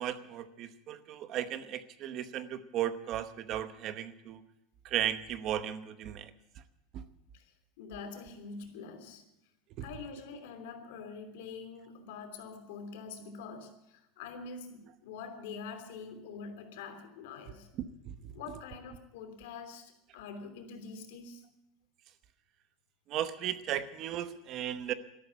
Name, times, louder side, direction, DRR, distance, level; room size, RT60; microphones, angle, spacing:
voice 1, 0.0-4.4 4.8-6.3 9.8-9.9 18.1-18.2 23.1-24.9, right 11 dB, 35° right, 0.9 m, -35 dB
voice 2, 7.8-9.3 9.8-17.7 18.3-21.4, left 5 dB, 80° left, 3.0 m, -45 dB
13.5 x 12.0 x 8.2 m
supercardioid pair, 170°, 0 cm